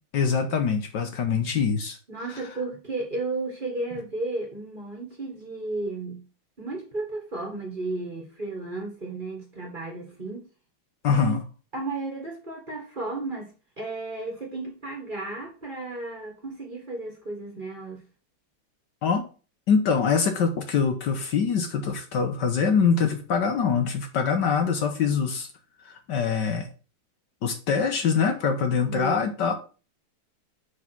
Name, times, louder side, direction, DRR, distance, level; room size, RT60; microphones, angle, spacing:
voice 1, 0.1-2.0 2.3-2.4 11.0-11.4 19.0-19.3 19.7-25.5 25.8-26.7 27.4-29.5, left 6 dB, 65° left, 6 dB, 1.5 m, -24 dB
voice 2, 2.1-6.2 6.6-10.5 11.1-11.4 11.7-13.5 13.8-18.0 28.7-29.2, right 2 dB, 25° right, 1 dB, 1.7 m, -33 dB
5.5 x 4.9 x 6.0 m, 0.35 s
omnidirectional pair, 2.2 m